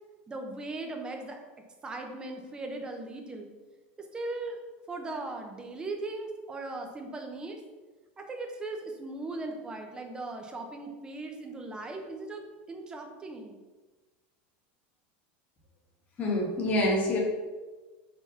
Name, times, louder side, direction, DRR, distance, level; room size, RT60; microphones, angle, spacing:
voice 1, 0.3-1.4 1.8-3.5 4.1-4.6 4.9-7.6 8.2-12.4 12.7-13.6, right 2 dB, 15° right, 3 dB, 1.0 m, -38 dB
voice 2, 16.2-17.2, left 1 dB, 25° left, -3 dB, 1.8 m, -26 dB
5.8 x 3.9 x 5.9 m, 1.2 s
supercardioid pair, 150°, 6 cm